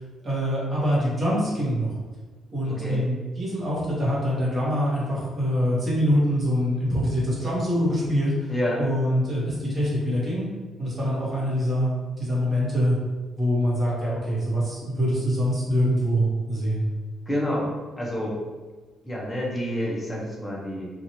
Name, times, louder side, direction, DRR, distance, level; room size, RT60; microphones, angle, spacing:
voice 1, 0.2-1.9 2.5-8.5 8.8-10.5 10.8-11.9 12.2-13.0 13.4-16.9, equal, 25° right, -7 dB, 1.1 m, -24 dB
voice 2, 2.6-3.0 8.5-8.8 17.3-17.7 18.0-18.4 19.0-20.9, equal, 10° left, -4 dB, 0.7 m, -28 dB
2.9 x 2.4 x 2.8 m, 1.3 s
cardioid pair, 150°, 0 cm